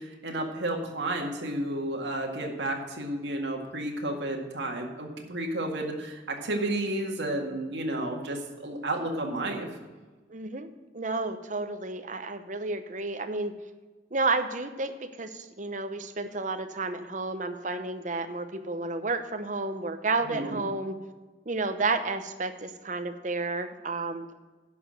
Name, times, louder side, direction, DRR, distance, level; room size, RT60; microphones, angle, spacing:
voice 1, 0.0-9.7 20.3-20.6, right 1 dB, 70° right, 1 dB, 2.0 m, -32 dB
voice 2, 10.3-10.7 10.9-13.5 14.1-21.0 21.5-24.3, right 3 dB, 40° right, 8 dB, 0.9 m, -31 dB
11.0 x 6.1 x 7.6 m, 1.3 s
head